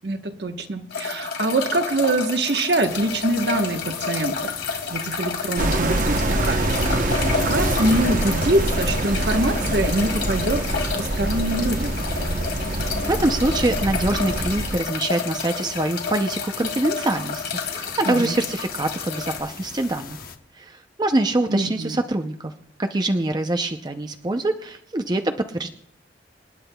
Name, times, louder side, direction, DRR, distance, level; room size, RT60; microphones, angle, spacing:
voice 1, 0.0-12.0 18.0-18.4 21.5-22.0, right 2 dB, 65° right, 6 dB, 1.1 m, -24 dB
sound 1, 0.9-19.4, left 5 dB, 75° left, 2.3 m, -30 dB
sound 2, 2.8-20.4, left 6 dB, 55° left, 0.9 m, -41 dB
sound 3, 5.6-14.8, right 2 dB, 45° right, 0.8 m, -25 dB
voice 2, 12.7-20.2 20.6-22.5 22.8-25.7, right 2 dB, 25° right, 6 dB, 0.5 m, -24 dB
28.0 x 10.5 x 2.3 m, 0.71 s
head